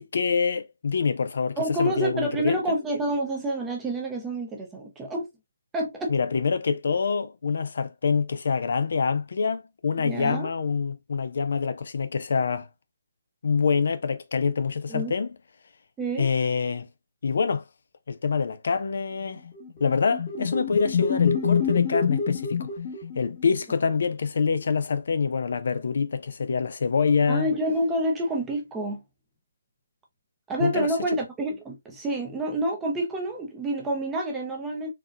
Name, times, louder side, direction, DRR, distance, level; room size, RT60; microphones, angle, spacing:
voice 1, 0.0-2.6 6.1-12.7 13.4-15.4 16.2-16.9 17.2-17.6 18.1-19.4 19.8-22.7 23.2-27.5 30.6-30.9, left 5 dB, 55° left, 0.4 m, -26 dB
voice 2, 1.6-5.3 5.7-6.2 10.0-10.5 14.9-15.1 16.0-16.3 27.3-29.0 30.5-34.9, right 1 dB, 10° right, 0.6 m, -28 dB
sound 1, 19.6-23.6, left 6 dB, 20° left, 1.1 m, -26 dB
3.9 x 2.2 x 2.4 m
hypercardioid pair, 170°, 0 cm